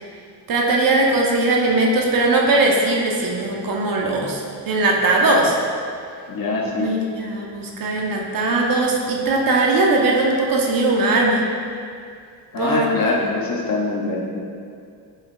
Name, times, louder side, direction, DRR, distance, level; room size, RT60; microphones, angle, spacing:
voice 1, 0.5-5.6 6.6-11.5 12.6-13.3, right 2 dB, 50° right, -1 dB, 0.6 m, -19 dB
voice 2, 6.3-6.9 12.5-14.4, left 3 dB, 50° left, -2 dB, 0.7 m, -23 dB
5.3 x 2.3 x 3.7 m, 2.3 s
cardioid pair, 100°, 45 cm